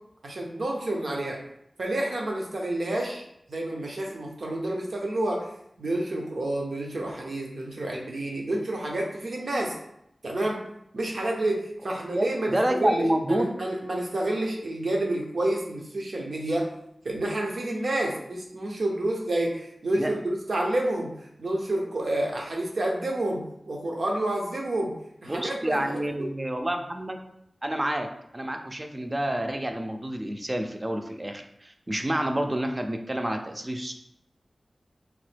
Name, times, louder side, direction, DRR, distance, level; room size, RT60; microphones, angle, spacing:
voice 1, 0.2-1.4 1.8-3.2 3.5-5.5 5.8-9.7 10.2-10.6 10.9-16.7 17.0-21.1 21.4-24.9 25.2-26.0, right 1 dB, 75° right, -1 dB, 0.7 m, -29 dB
voice 2, 12.2-13.5 20.0-20.1 25.3-27.2 27.6-28.1 28.3-33.9, right 1 dB, 30° right, 5 dB, 0.4 m, -28 dB
2.9 x 2.1 x 3.3 m, 0.77 s
cardioid pair, 40°, 0 cm